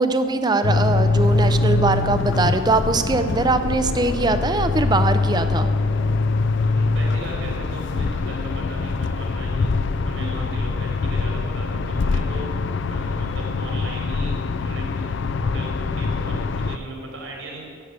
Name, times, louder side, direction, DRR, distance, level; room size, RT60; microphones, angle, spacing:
voice 1, 0.0-5.7, right 3 dB, 20° right, 9 dB, 0.5 m, -21 dB
sound 1, 0.6-16.8, left 3 dB, 55° left, 0.4 m, -23 dB
voice 2, 6.6-12.5 12.9-15.2 15.4-17.6, right 1 dB, 75° right, -1 dB, 3.7 m, -37 dB
10.0 x 8.2 x 8.0 m, 2.3 s
head